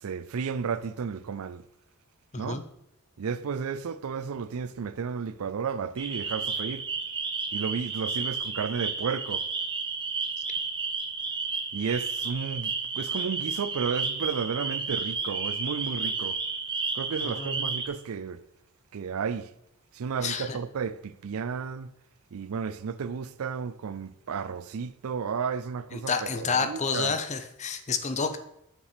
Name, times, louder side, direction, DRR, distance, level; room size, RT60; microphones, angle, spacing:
voice 1, 0.0-1.6 2.4-2.6 3.2-6.9 7.5-9.5 11.7-16.4 16.9-18.4 18.9-19.5 19.9-21.9 22.3-27.2, right 6 dB, 75° right, 0.4 m, -33 dB
voice 2, 2.3-2.6 17.2-17.6 20.2-20.6 26.1-28.4, left 5 dB, 30° left, 0.6 m, -29 dB
sound 1, 6.0-17.9, right 4 dB, 20° right, 0.8 m, -32 dB
6.8 x 6.0 x 4.9 m
head